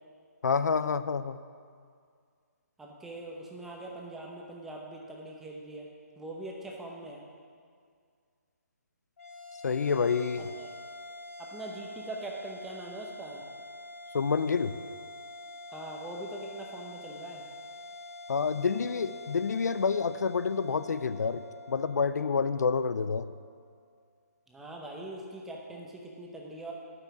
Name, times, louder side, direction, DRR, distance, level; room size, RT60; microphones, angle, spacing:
voice 1, 0.4-1.4 9.6-10.4 14.1-14.7 18.3-23.3, left 5 dB, 80° left, 13 dB, 0.5 m, -28 dB
voice 2, 2.8-5.9 6.2-7.2 10.4-10.7 11.4-13.4 15.7-17.4 24.5-26.7, right 1 dB, 5° right, -1 dB, 0.8 m, -42 dB
sound 1, 9.2-23.8, left 2 dB, 55° left, 1.4 m, -46 dB
12.0 x 5.6 x 8.0 m, 2.1 s
hypercardioid pair, 165°, 9 cm